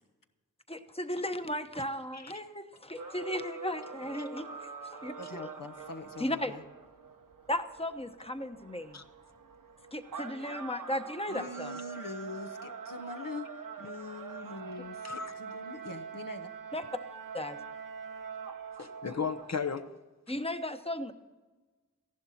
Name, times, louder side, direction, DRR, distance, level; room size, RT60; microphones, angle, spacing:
voice 1, 0.7-4.7 5.0-5.4 6.2-6.5 7.5-9.0 9.9-11.8 16.7-16.8 17.3-17.6 20.3-21.1, left 1 dB, 15° left, 8 dB, 1.0 m, -35 dB
sound 1, 3.0-19.5, right 5 dB, 70° right, 0.9 m, -44 dB
voice 2, 5.2-6.6 11.3-13.5 13.8-16.5, left 3 dB, 75° left, 8 dB, 1.1 m, -43 dB
voice 3, 18.8-19.9, left 6 dB, 50° left, 7 dB, 0.8 m, -35 dB
14.5 x 11.5 x 4.2 m, 1.3 s
wide cardioid pair, 40°, 33 cm